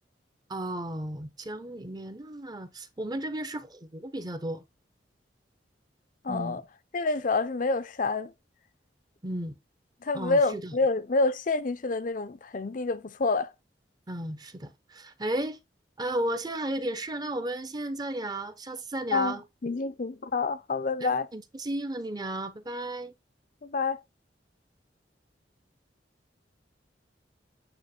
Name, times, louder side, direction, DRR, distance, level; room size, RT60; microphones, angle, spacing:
voice 1, 0.5-4.6 6.3-6.6 9.2-9.5 10.1-10.7 14.1-15.6 16.0-19.4 21.0-23.1, right 1 dB, 25° right, 0.8 m, -34 dB
voice 2, 6.2-6.6 6.9-8.3 10.0-13.5 19.1-21.3 23.6-24.0, left 3 dB, 50° left, 0.6 m, -28 dB
8.9 x 3.1 x 4.3 m
head